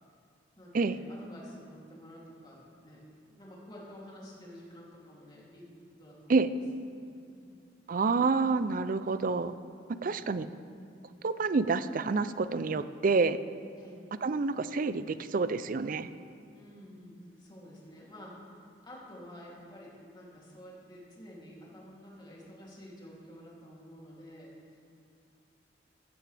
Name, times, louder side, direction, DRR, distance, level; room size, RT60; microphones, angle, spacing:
voice 1, 0.6-5.7 6.0-6.6 7.3-7.5 13.7-14.0 16.5-24.9, equal, 25° left, -5 dB, 3.0 m, -50 dB
voice 2, 7.9-9.5 10.0-10.5 11.2-13.4 14.2-16.1, right 4 dB, 50° right, 13 dB, 0.5 m, -28 dB
15.5 x 12.5 x 3.4 m, 2.5 s
head